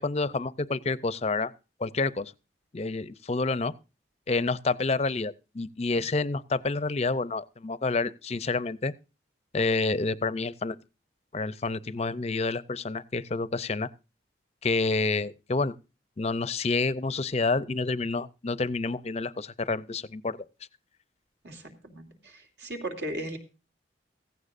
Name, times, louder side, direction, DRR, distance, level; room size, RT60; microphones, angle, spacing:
voice 1, 0.0-1.5 1.8-2.3 2.7-3.7 4.3-8.9 9.5-10.8 11.3-13.9 14.6-15.7 16.2-20.4, left 3 dB, 35° left, 0.5 m, -28 dB
voice 2, 21.4-23.4, right 1 dB, 70° right, 2.9 m, -37 dB
16.0 x 15.0 x 2.5 m
head